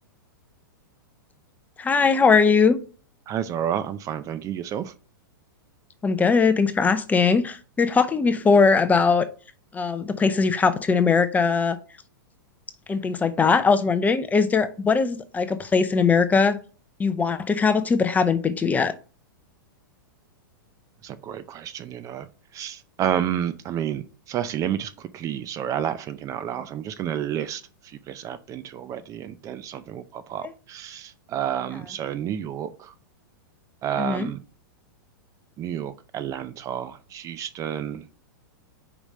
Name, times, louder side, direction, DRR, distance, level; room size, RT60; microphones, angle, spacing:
voice 1, 1.8-2.8 6.0-9.2 9.7-11.8 12.9-16.6 17.0-18.9 34.0-34.3, left 5 dB, 15° left, 0.6 m, -20 dB
voice 2, 3.3-4.9 21.0-22.3 22.5-32.9 33.8-34.4 35.6-38.1, right 10 dB, 30° right, 0.5 m, -30 dB
5.1 x 4.9 x 4.2 m
hypercardioid pair, 125°, 11 cm